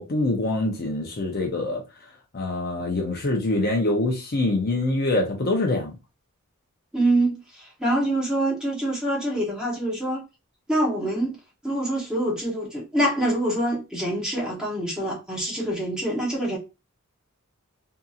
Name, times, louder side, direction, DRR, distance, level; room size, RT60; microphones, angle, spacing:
voice 1, 0.0-1.8 2.3-5.9, left 2 dB, 45° left, 0.6 m, -24 dB
voice 2, 6.9-10.2 10.7-11.4 11.6-16.6, right 1 dB, 5° right, 1.0 m, -25 dB
2.7 x 2.6 x 2.3 m
head